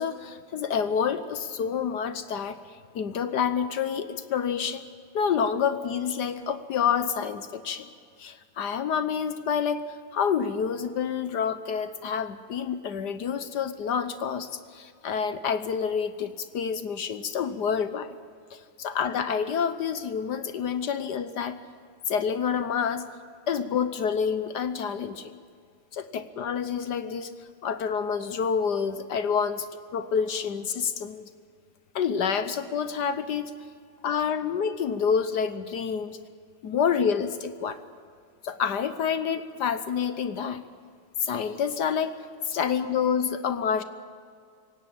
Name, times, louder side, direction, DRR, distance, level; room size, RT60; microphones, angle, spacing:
voice 1, 0.0-2.6 2.9-4.8 5.1-7.9 8.2-9.9 10.1-18.1 18.5-21.6 22.1-23.1 23.5-25.4 25.9-27.3 27.6-31.3 31.9-33.5 34.0-36.2 36.6-37.8 38.4-40.6 41.2-42.1 42.5-43.8, left 7 dB, 60° left, 11 dB, 1.3 m, -28 dB
26.0 x 17.0 x 8.7 m, 2.2 s
omnidirectional pair, 2.3 m